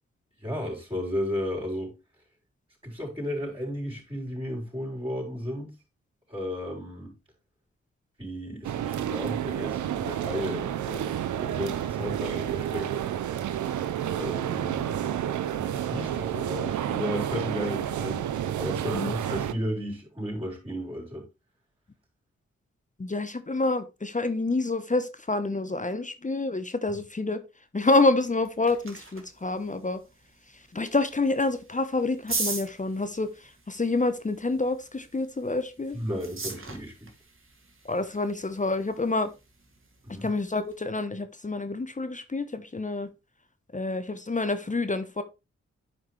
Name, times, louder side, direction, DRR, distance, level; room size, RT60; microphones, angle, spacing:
voice 1, 0.4-1.9 2.8-5.7 6.3-7.1 8.2-12.9 14.1-15.1 15.5-21.3 35.9-37.1 40.0-40.3, equal, 20° right, 4.6 m, -34 dB
sound 1, 8.6-19.5, right 10 dB, 85° right, 0.7 m, -30 dB
voice 2, 23.0-27.4 27.7-30.0 30.7-36.0 37.8-39.3 40.2-43.1 43.7-45.2, left 3 dB, 25° left, 1.0 m, -27 dB
sound 2, 28.2-40.8, right 3 dB, 45° right, 2.3 m, -41 dB
9.5 x 5.2 x 3.3 m
supercardioid pair, 45°, 29 cm